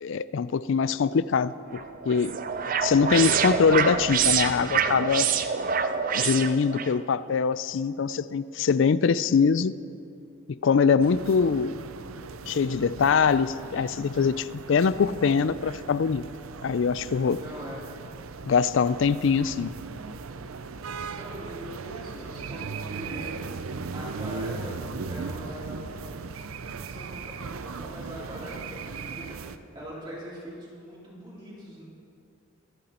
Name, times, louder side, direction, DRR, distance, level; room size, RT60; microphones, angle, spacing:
voice 1, 0.0-2.4 2.8-5.3 6.1-9.8 10.5-11.8 12.5-16.3 16.6-17.4 18.5-19.7, left 5 dB, 65° left, 17 dB, 0.4 m, -23 dB
sound 1, 1.7-6.9, right 7 dB, 40° right, 0.5 m, -26 dB
sound 2, 11.0-29.6, right 4 dB, 85° right, 0.6 m, -38 dB
voice 2, 17.3-17.8 21.1-23.3 23.9-25.8 26.8-31.8, equal, 20° right, -7 dB, 2.9 m, -42 dB
24.0 x 9.1 x 4.3 m, 2.4 s
head